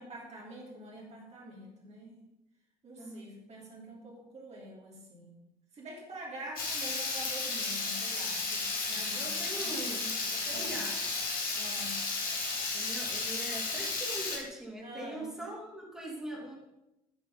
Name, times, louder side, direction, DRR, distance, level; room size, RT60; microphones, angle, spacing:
voice 1, 0.0-2.2 2.8-5.4 5.7-9.8 10.2-10.8 11.5-12.0 14.8-15.4, right 1 dB, 35° right, -3 dB, 3.1 m, -46 dB
voice 2, 3.0-3.3 9.1-11.2 12.7-16.6, right 1 dB, ahead, -3 dB, 3.1 m, -42 dB
Water tap faucet / Liquid, 6.6-14.4, left 3 dB, 45° left, 2.5 m, -33 dB
9.8 x 6.8 x 5.4 m, 0.91 s
figure-of-eight pair, 55°, 20 cm